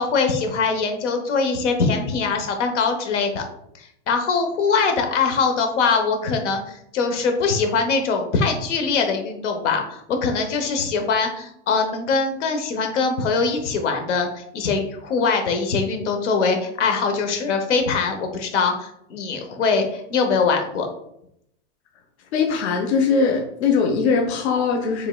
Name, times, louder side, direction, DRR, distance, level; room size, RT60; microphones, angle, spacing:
voice 1, 0.0-3.4 3.7-20.9, left 4 dB, 90° left, 5 dB, 1.0 m, -22 dB
voice 2, 22.3-25.1, left 5 dB, 70° left, 2 dB, 0.7 m, -21 dB
5.3 x 3.5 x 2.3 m, 0.74 s
supercardioid pair, 165°, 35 cm